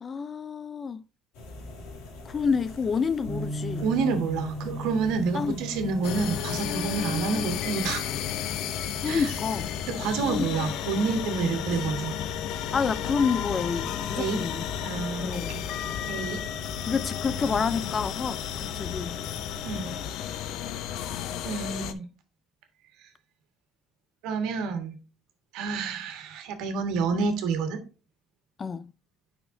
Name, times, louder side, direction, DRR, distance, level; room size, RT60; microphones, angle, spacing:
voice 1, 0.0-1.0 2.3-3.8 5.3-5.6 9.0-9.7 10.2-10.5 12.7-14.7 15.2-15.5 16.9-18.4 18.8-19.2 28.6-28.9, left 5 dB, 30° left, 0.3 m, -28 dB
sound 1, 1.3-20.1, left 2 dB, 90° left, 2.4 m, -44 dB
Bass guitar, 3.3-9.5, equal, 5° right, 2.4 m, -38 dB
voice 2, 3.8-8.0 8.7-9.3 9.9-12.2 14.1-14.5 14.8-15.6 16.1-16.4 19.6-19.9 21.4-22.0 23.0-23.1 24.2-25.0 25.5-27.8, right 5 dB, 80° right, 1.5 m, -29 dB
sound 2, 6.0-21.9, left 10 dB, 70° left, 0.6 m, -33 dB
8.5 x 5.7 x 2.7 m
cardioid pair, 125°, 0 cm